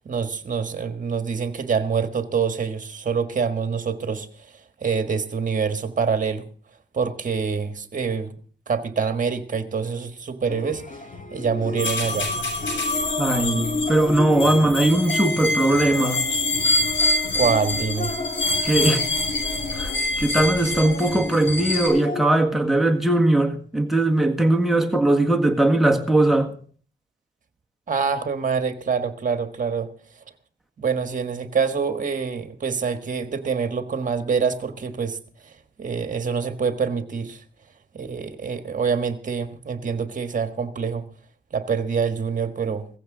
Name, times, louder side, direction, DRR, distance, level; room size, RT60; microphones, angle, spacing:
voice 1, 0.0-4.5 4.8-6.5 6.9-8.3 8.7-11.0 11.3-12.3 17.3-18.2 27.9-29.9 30.8-35.2 35.4-37.4 37.9-41.0 41.5-42.9, right 6 dB, 45° right, 1.6 m, -26 dB
sound 1, 10.5-22.3, left 4 dB, 45° left, 2.3 m, -32 dB
sound 2, 11.8-21.9, left 2 dB, 80° left, 7.5 m, -26 dB
voice 2, 13.2-16.2 18.6-19.0 19.7-26.5, right 1 dB, ahead, 1.6 m, -20 dB
16.5 x 15.0 x 3.8 m
wide cardioid pair, 110°, 19 cm